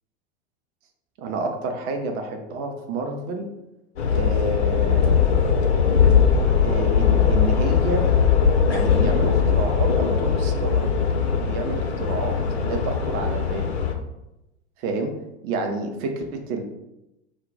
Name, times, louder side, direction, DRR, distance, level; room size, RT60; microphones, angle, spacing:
voice 1, 1.2-3.5 4.1-5.3 6.6-8.1 8.7-10.9 11.4-13.7 14.8-15.1 15.4-16.6, right 3 dB, 30° right, 4 dB, 0.4 m, -29 dB
sound 1, 4.0-13.9, left 6 dB, 65° left, 0.5 m, -20 dB
2.1 x 2.1 x 3.8 m, 0.90 s
figure-of-eight pair, 90°, 34 cm